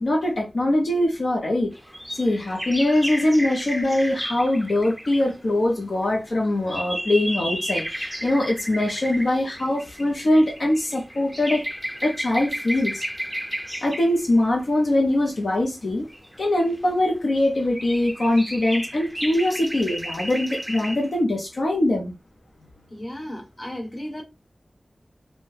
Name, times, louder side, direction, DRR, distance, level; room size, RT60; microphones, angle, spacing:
voice 1, 0.0-1.7 2.1-11.7 12.0-13.0 13.8-16.1 16.4-22.1, left 1 dB, 80° left, 0.6 m, -22 dB
sound 1, 1.7-5.4 6.0-14.2 15.4-15.5 16.1-17.1 17.4-21.1, equal, ahead, 0.4 m, -33 dB
voice 2, 22.9-24.2, equal, 40° left, 1.0 m, -34 dB
2.7 x 2.1 x 3.1 m
wide cardioid pair, 65°, 0 cm